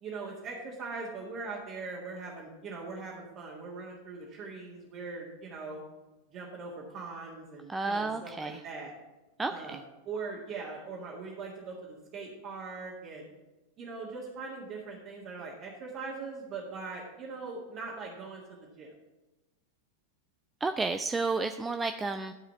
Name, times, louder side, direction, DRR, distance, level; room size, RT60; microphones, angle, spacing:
voice 1, 0.0-5.8 6.3-8.9 9.5-9.8 10.1-13.3 13.8-18.9, right 4 dB, 35° right, -4 dB, 1.9 m, -41 dB
voice 2, 7.7-8.6 9.4-9.8 20.6-22.3, right 3 dB, 15° right, 8 dB, 0.4 m, -31 dB
12.5 x 4.9 x 6.1 m, 1.1 s
figure-of-eight pair, 90°, 0 cm